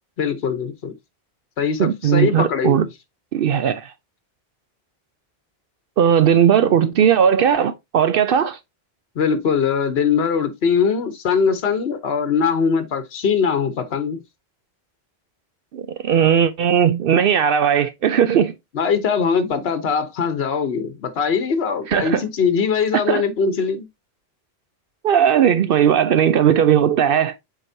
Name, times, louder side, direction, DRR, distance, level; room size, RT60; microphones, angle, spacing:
voice 1, 0.2-0.9 1.6-2.9 9.2-14.2 18.7-23.9, left 6 dB, 75° left, 1.2 m, -21 dB
voice 2, 1.8-2.9 3.3-3.9 6.0-8.6 15.7-18.5 21.9-22.2 22.9-23.2 25.0-27.3, right 8 dB, 65° right, 0.7 m, -17 dB
7.7 x 4.7 x 2.7 m
omnidirectional pair, 1.0 m